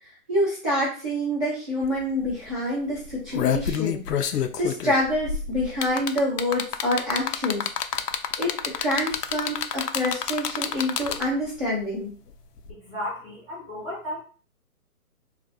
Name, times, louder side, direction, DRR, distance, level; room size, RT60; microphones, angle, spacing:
voice 1, 0.3-7.7 8.4-12.1, left 1 dB, 25° right, -11 dB, 0.6 m, -27 dB
sound 1, 1.8-1.9 2.2-2.5 3.0-11.5 12.7-12.8, left 8 dB, 90° left, 0.6 m, -28 dB
voice 2, 12.7-14.2, left 1 dB, 5° right, -11 dB, 1.0 m, -34 dB
3.0 x 2.5 x 2.6 m, 0.38 s
hypercardioid pair, 180°, 46 cm